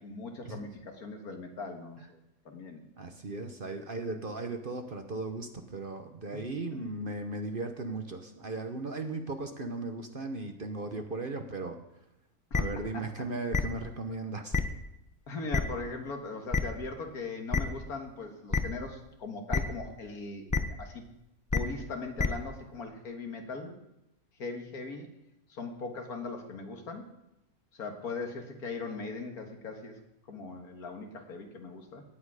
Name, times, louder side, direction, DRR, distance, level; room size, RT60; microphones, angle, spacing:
voice 1, 0.0-2.2 2.5-2.9 6.3-6.4 6.7-7.1 12.5-12.6 12.9-13.0 15.3-21.0 21.5-23.8 24.4-25.1 25.5-27.1 27.7-30.0 30.3-32.0, left 3 dB, 80° left, 3 dB, 2.1 m, -40 dB
voice 2, 3.0-11.8 12.5-14.6, right 3 dB, 40° right, 6 dB, 1.0 m, -37 dB
sound 1, 12.5-12.6 13.5-13.6 14.5-14.6 15.5-15.6 16.5-16.6 17.5-17.6 18.5-18.6 19.5-19.6 20.5-20.6 21.5-21.6 22.2-22.3, left 4 dB, 25° left, 0.4 m, -26 dB
17.5 x 8.8 x 4.9 m, 0.86 s
omnidirectional pair, 1.6 m